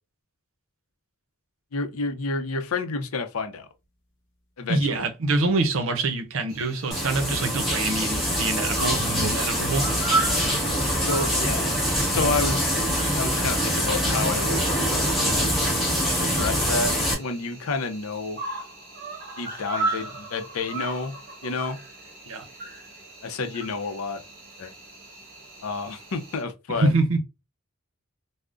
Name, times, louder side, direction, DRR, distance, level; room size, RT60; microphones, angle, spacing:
voice 1, 1.7-3.7 4.6-5.1 11.0-11.7 12.1-12.8 13.2-14.8 15.2-15.5 16.2-18.4 19.4-21.2 21.4-21.8 23.2-24.2 24.6-24.7 25.6-26.9, left 4 dB, 75° left, 0.5 m, -29 dB
voice 2, 4.7-9.9 22.3-22.4 26.8-27.2, right 2 dB, 65° right, 0.6 m, -25 dB
Cricket, 6.5-26.4, right 3 dB, 45° right, 1.0 m, -36 dB
sound 1, 6.9-17.1, equal, ahead, 1.1 m, -24 dB
sound 2, 8.7-9.3, right 1 dB, 40° left, 0.9 m, -31 dB
3.5 x 2.0 x 2.4 m
head